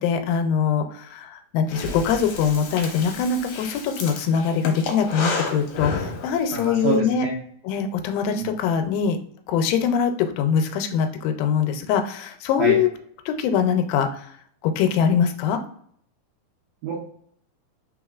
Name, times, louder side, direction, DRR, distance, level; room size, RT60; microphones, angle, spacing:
voice 1, 0.0-7.3 7.7-9.2 9.5-12.9 13.3-14.3 14.6-15.6, left 7 dB, 85° left, 7 dB, 2.3 m, -23 dB
Breathing, 1.7-6.6, left 4 dB, 70° left, 1.7 m, -31 dB
voice 2, 6.5-7.3 8.4-8.5 12.6-12.8 16.8-17.0, right 5 dB, 75° right, -4 dB, 1.6 m, -26 dB
4.7 x 3.7 x 2.3 m, 0.64 s
omnidirectional pair, 4.0 m